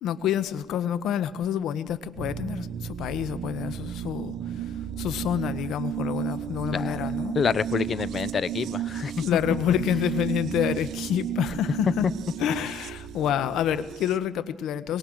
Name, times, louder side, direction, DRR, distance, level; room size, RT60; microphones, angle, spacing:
voice 1, 0.0-7.4 9.2-12.1 12.4-15.0, left 9 dB, 85° left, 1.2 m, -28 dB
sound 1, 2.2-14.2, right 10 dB, 80° right, 0.9 m, -33 dB
voice 2, 6.7-7.0 7.3-9.2, left 6 dB, 50° left, 0.8 m, -27 dB
25.0 x 22.0 x 6.4 m
cardioid pair, 90°, 0 cm